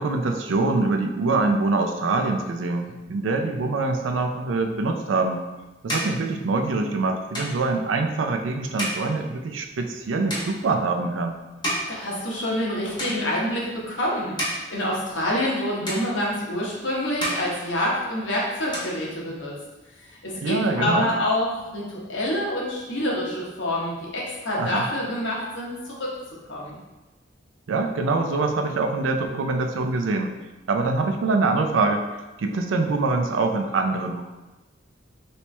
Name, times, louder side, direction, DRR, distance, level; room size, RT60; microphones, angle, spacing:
voice 1, 0.0-5.4 5.8-11.4 20.4-21.1 24.6-24.9 27.7-30.3 30.7-32.0 32.4-34.2, right 3 dB, 85° right, 5 dB, 0.4 m, -24 dB
sound 1, 5.1-12.7 13.0-13.7 14.1-15.6 15.9-16.7 17.0-18.3 18.5-19.6, equal, 25° left, 0.9 m, -33 dB
voice 2, 11.9-19.5 20.1-26.1 26.5-26.8, left 1 dB, 75° left, -4 dB, 1.0 m, -27 dB
3.2 x 3.0 x 3.2 m, 1.1 s
head